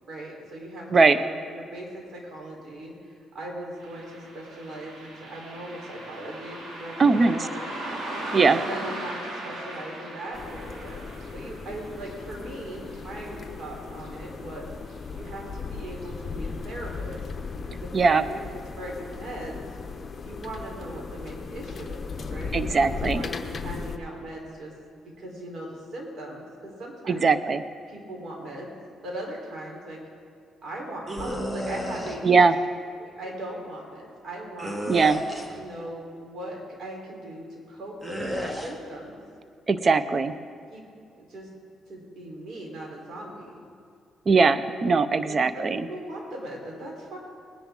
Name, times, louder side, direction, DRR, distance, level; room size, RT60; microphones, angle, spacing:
voice 1, 0.1-7.7 8.2-11.1 11.3-14.7 15.1-17.2 17.6-18.4 18.7-19.7 20.2-24.7 25.2-27.3 27.9-28.7 29.0-30.0 30.6-32.4 33.0-34.8 35.5-39.2 39.8-40.2 40.7-40.8 41.2-41.5 41.9-43.7 45.2-47.2, right 1 dB, 60° right, -1 dB, 4.0 m, -39 dB
Car passing by, 3.8-14.6 14.9-15.0 15.9-16.1 16.6-16.7 17.2-17.3, right 1 dB, 80° right, 3.2 m, -39 dB
voice 2, 7.0-7.4 8.3-8.6 17.9-18.2 22.5-23.2 27.1-27.6 32.2-32.5 34.9-35.2 39.7-40.3 44.3-45.9, right 4 dB, 40° right, 12 dB, 0.7 m, -20 dB
sound 1, 10.3-24.0, left 4 dB, 35° left, 0.9 m, -37 dB
sound 2, 31.1-32.2 34.6-35.6 38.0-38.7, equal, 15° right, 1.7 m, -32 dB
20.0 x 10.0 x 3.8 m, 2.3 s
cardioid pair, 90°, 0 cm